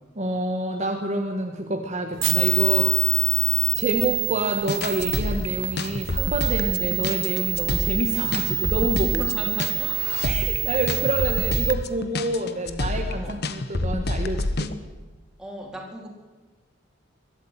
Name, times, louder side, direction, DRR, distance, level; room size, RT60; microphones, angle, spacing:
voice 1, 0.1-3.3 3.7-9.2 10.2-14.7, right 1 dB, 35° right, 3 dB, 1.6 m, -27 dB
sound 1, 2.2-11.7, right 14 dB, 65° right, 1.1 m, -26 dB
sound 2, 4.7-14.8, left 2 dB, 55° left, 1.2 m, -28 dB
voice 2, 9.2-10.0 13.1-13.4 15.4-16.1, equal, 5° right, 0 dB, 3.9 m, -37 dB
22.5 x 12.5 x 9.1 m, 1.4 s
head